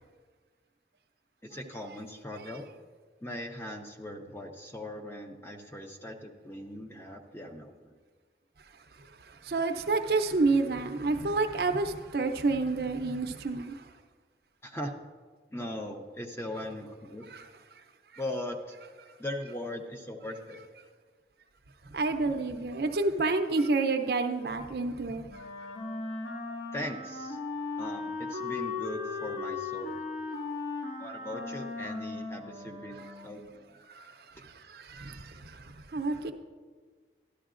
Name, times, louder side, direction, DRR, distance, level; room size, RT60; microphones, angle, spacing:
voice 1, 1.4-2.7 3.2-7.9 14.6-14.9 15.5-17.2 18.2-18.8 19.2-20.6 26.7-27.4 27.8-30.0 31.0-33.8, left 1 dB, 15° left, 0.6 m, -39 dB
voice 2, 9.4-13.8 21.9-25.3 33.9-34.1 34.4-36.3, right 3 dB, 60° right, 0.5 m, -29 dB
Wind instrument woodwind instrument, 25.3-33.5, left 3 dB, 85° left, 1.8 m, -37 dB
12.5 x 11.5 x 2.5 m
head